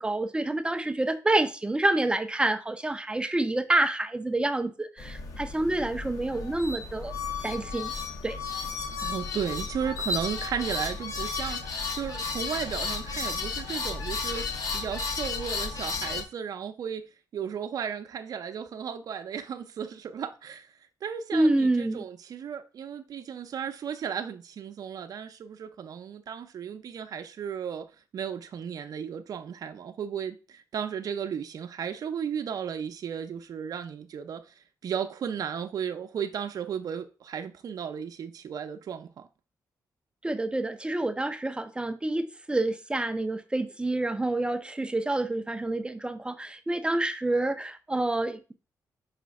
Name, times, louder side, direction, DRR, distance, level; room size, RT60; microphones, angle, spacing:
voice 1, 0.0-7.1 7.4-7.9 8.2-8.4 21.3-22.0 40.2-48.5, right 2 dB, 15° right, 0.5 m, -28 dB
sound 1, 5.0-16.2, left 4 dB, 55° left, 1.1 m, -33 dB
voice 2, 9.0-17.1 17.3-20.7 21.0-27.9 28.1-34.4 34.8-39.3, right 7 dB, 60° right, 0.6 m, -35 dB
5.7 x 3.3 x 5.2 m
cardioid pair, 115°, 7 cm